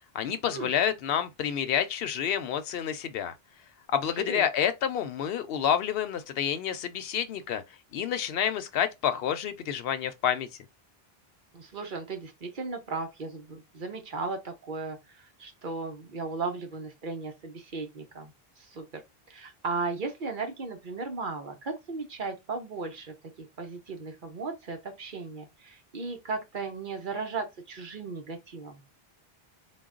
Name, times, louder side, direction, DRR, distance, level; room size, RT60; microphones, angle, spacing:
voice 1, 0.1-3.3 3.9-7.6 7.9-10.5, left 9 dB, 75° left, 0.8 m, -28 dB
voice 2, 11.5-19.0 19.3-28.8, right 4 dB, 55° right, 1.0 m, -36 dB
3.9 x 2.2 x 3.7 m
omnidirectional pair, 1.0 m